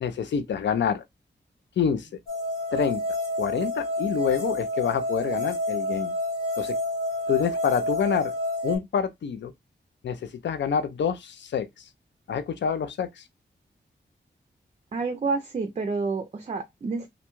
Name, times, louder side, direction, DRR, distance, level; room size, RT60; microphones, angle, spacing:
voice 1, 0.0-1.0 1.8-2.1 2.7-3.0 3.4-6.1 6.6-6.8 7.3-8.3 8.6-9.5 10.0-11.9 12.3-13.2, left 7 dB, 70° left, 0.4 m, -27 dB
sound 1, 2.3-8.8, left 1 dB, 15° left, 0.9 m, -29 dB
voice 2, 14.9-17.1, right 4 dB, 35° right, 0.4 m, -29 dB
2.5 x 2.2 x 2.9 m
wide cardioid pair, 100°, 19 cm